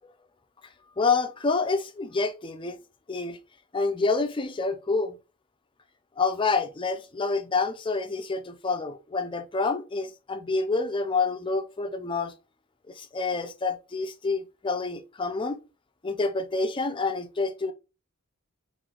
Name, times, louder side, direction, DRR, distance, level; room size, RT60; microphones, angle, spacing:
voice 1, 1.0-2.8 3.1-3.4 3.7-5.2 6.2-12.3 13.0-15.6 16.0-17.7, left 4 dB, 25° left, 0.5 m, -28 dB
3.8 x 3.3 x 3.4 m
head